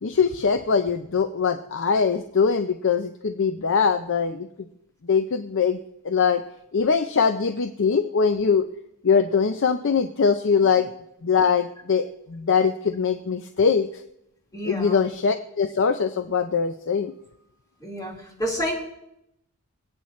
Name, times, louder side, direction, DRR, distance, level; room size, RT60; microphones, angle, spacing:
voice 1, 0.0-4.5 5.1-5.8 6.0-6.4 6.7-8.7 9.0-10.9 11.2-13.9 14.6-17.1, left 5 dB, 60° left, 8 dB, 0.6 m, -22 dB
voice 2, 14.5-15.0 17.8-18.1 18.4-18.7, equal, 15° left, -3 dB, 4.2 m, -28 dB
26.0 x 8.8 x 3.2 m, 0.81 s
head